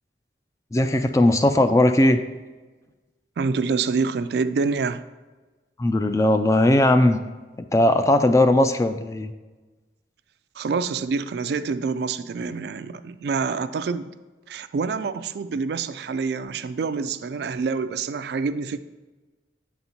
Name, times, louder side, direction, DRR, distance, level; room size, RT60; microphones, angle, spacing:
voice 1, 0.7-2.2 5.8-7.2 7.7-9.3, left 1 dB, 15° left, 8 dB, 0.3 m, -18 dB
voice 2, 3.4-5.0 10.6-14.1 14.5-18.8, right 4 dB, 65° right, 12 dB, 0.3 m, -26 dB
8.5 x 4.1 x 4.4 m, 1.2 s
head